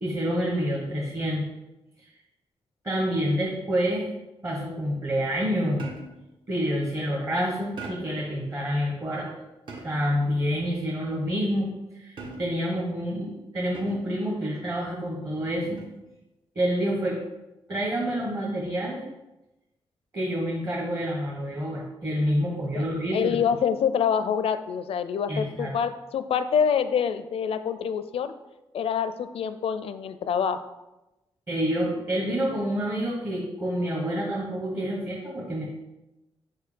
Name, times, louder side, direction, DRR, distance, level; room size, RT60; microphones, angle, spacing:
voice 1, 0.0-1.4 2.0-2.1 2.8-4.1 4.4-5.9 6.5-9.3 9.8-15.8 16.5-17.2 17.7-19.0 20.1-23.4 25.3-25.7 31.5-35.7, equal, 30° right, -3 dB, 1.3 m, -28 dB
sound 1, 5.8-6.3 7.8-8.3 9.7-10.2 12.2-12.7 13.7-14.2 15.6-16.0, right 3 dB, 55° right, 1.4 m, -41 dB
voice 2, 23.1-28.3 28.7-30.6, left 7 dB, 70° left, 11 dB, 0.5 m, -26 dB
4.7 x 4.7 x 5.1 m, 0.99 s
cardioid pair, 90°, 10 cm